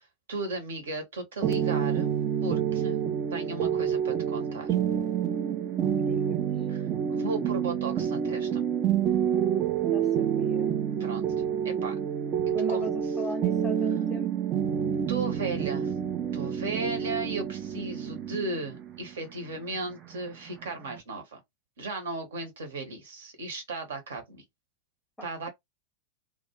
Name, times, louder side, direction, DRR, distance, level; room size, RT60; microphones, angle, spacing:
voice 1, 0.3-2.1 2.4-3.0 3.3-4.7 6.7-6.8 7.1-8.6 11.0-11.3 11.6-12.0 12.5-12.9 15.1-15.9 16.3-21.4 21.8-24.4 25.2-25.5, right 3 dB, 60° right, 1.0 m, -35 dB
sound 1, 1.4-21.0, right 8 dB, 30° right, 0.4 m, -28 dB
voice 2, 5.7-6.7 9.9-10.8 12.5-14.3 25.2-25.5, right 1 dB, 5° left, 0.7 m, -39 dB
2.3 x 2.2 x 2.9 m
figure-of-eight pair, 90°, 0 cm